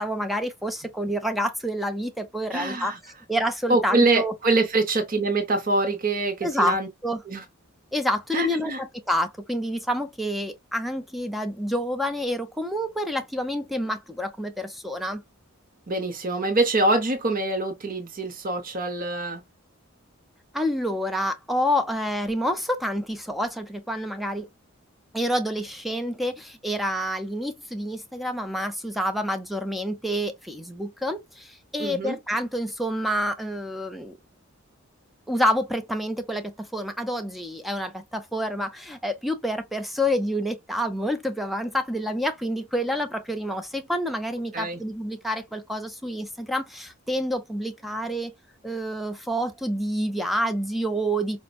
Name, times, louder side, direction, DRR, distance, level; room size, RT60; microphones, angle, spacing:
voice 1, 0.0-2.9 3.3-4.3 6.4-6.8 7.0-7.2 7.9-15.2 20.5-24.5 25.1-34.2 35.3-48.3 48.6-51.4, equal, ahead, 0.4 m, -28 dB
voice 2, 2.5-3.0 3.7-6.9 7.3-7.4 8.3-8.8 15.9-19.4 31.8-32.2 44.5-44.8, right 2 dB, 40° right, 0.6 m, -24 dB
5.0 x 2.1 x 2.3 m
head